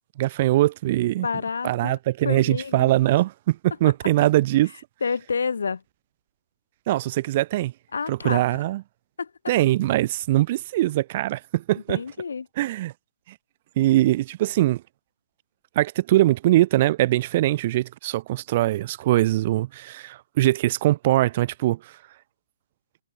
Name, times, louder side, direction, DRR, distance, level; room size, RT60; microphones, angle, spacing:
voice 1, 0.2-1.3 1.6-4.7 6.9-7.7 8.1-8.8 9.5-12.0 12.6-12.9 13.8-14.8 15.8-21.8, right 15 dB, 30° right, 1.0 m, -22 dB
voice 2, 1.2-2.0 2.2-2.9 5.0-5.8 7.9-8.6 9.2-9.3 11.9-12.5, left 5 dB, 80° left, 1.7 m, -29 dB
hypercardioid pair, 170°, 0 cm